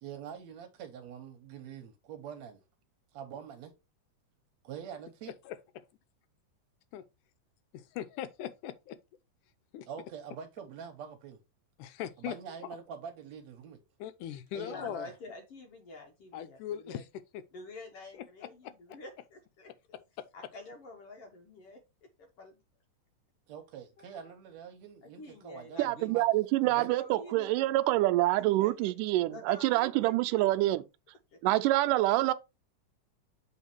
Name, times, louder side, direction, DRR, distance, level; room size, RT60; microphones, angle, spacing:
voice 1, 0.0-2.6 3.1-3.7 4.6-5.3 9.9-11.4 12.2-13.8 14.5-15.1 23.5-26.3 26.6-26.9, right 8 dB, 65° right, 2.0 m, -45 dB
voice 2, 5.5-5.8 6.9-7.0 7.7-9.0 9.7-9.9 11.8-12.4 14.0-15.1 16.3-17.1 17.3-17.4 18.1-19.0 20.2-20.3, left 11 dB, 80° left, 2.1 m, -40 dB
voice 3, 14.6-16.6 16.8-17.0 17.5-19.7 20.3-21.8 22.2-22.6 24.0-24.3 25.0-26.2 26.7-27.6 28.6-28.9 29.3-30.5 31.3-31.4, left 2 dB, 65° left, 1.5 m, -48 dB
voice 4, 25.8-30.8 31.4-32.3, right 17 dB, 85° right, 2.1 m, -26 dB
7.2 x 4.2 x 4.4 m
omnidirectional pair, 3.7 m